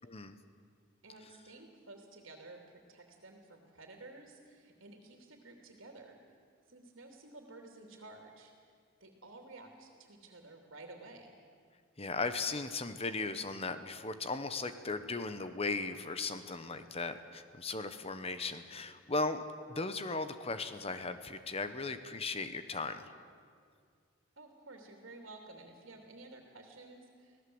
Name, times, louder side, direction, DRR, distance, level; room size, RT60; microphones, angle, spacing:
voice 1, 0.0-0.3 12.0-19.4 19.7-23.1, left 3 dB, 30° left, 10 dB, 1.1 m, -37 dB
voice 2, 1.0-6.2 6.7-8.5 9.0-11.4 24.4-27.4, right 2 dB, 65° right, 3 dB, 2.9 m, -53 dB
26.0 x 17.0 x 7.9 m, 2.1 s
head